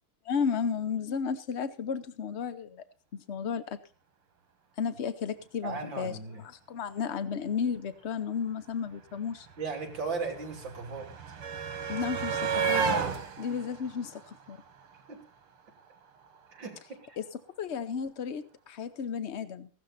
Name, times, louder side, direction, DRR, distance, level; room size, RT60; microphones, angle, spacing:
voice 1, 0.2-2.8 3.1-3.8 4.8-9.5 11.9-13.0 13.4-14.6 17.2-17.3 17.6-19.7, left 6 dB, 85° left, 13 dB, 0.6 m, -33 dB
voice 2, 5.6-6.4 9.6-11.1 15.1-15.2 16.5-16.8 17.1-17.2, right 4 dB, 55° right, 3 dB, 3.9 m, -36 dB
sound 1, 8.6-8.7 8.9-15.1 16.3-16.4 16.7-16.8, right 6 dB, 80° right, 2.8 m, -33 dB
16.0 x 12.5 x 4.1 m, 0.34 s
omnidirectional pair, 2.4 m